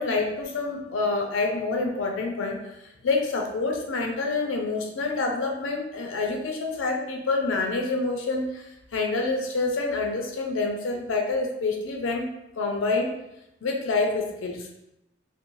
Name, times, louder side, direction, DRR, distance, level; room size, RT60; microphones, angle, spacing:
voice 1, 0.0-2.6 3.0-8.6 8.9-12.3 12.6-13.1 13.6-14.7, left 3 dB, 90° left, 2 dB, 0.5 m, -27 dB
2.6 x 2.0 x 2.9 m, 0.87 s
head